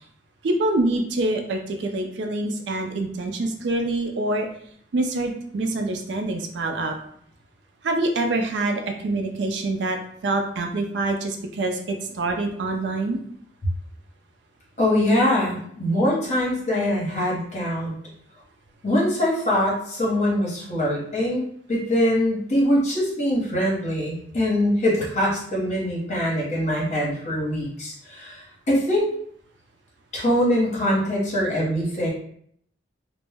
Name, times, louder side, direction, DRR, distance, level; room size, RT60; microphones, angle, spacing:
voice 1, 0.4-4.5 4.9-7.0 7.8-10.0 10.2-13.2, right 2 dB, 80° right, 3 dB, 0.4 m, -25 dB
voice 2, 14.8-17.9 18.8-29.1 30.1-32.1, left 1 dB, 40° left, -4 dB, 0.8 m, -23 dB
2.1 x 2.0 x 3.3 m, 0.65 s
head